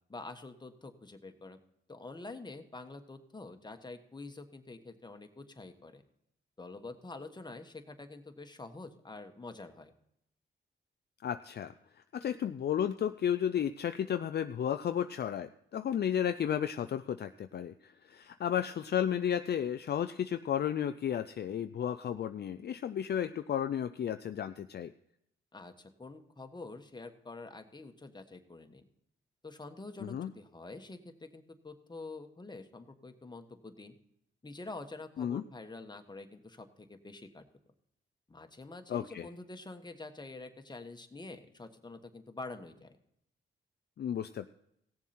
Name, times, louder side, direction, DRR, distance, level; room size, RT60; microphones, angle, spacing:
voice 1, 0.1-1.6 1.9-6.0 6.6-9.9 25.5-28.8 29.4-33.9 34.4-37.4 38.3-43.0, left 3 dB, 20° left, 6 dB, 1.3 m, -47 dB
voice 2, 11.2-11.7 12.1-24.9 30.0-30.3 35.2-35.4 38.9-39.3 44.0-44.5, left 9 dB, 50° left, 10 dB, 0.4 m, -33 dB
17.0 x 7.2 x 4.3 m, 0.75 s
cardioid pair, 75°, 21 cm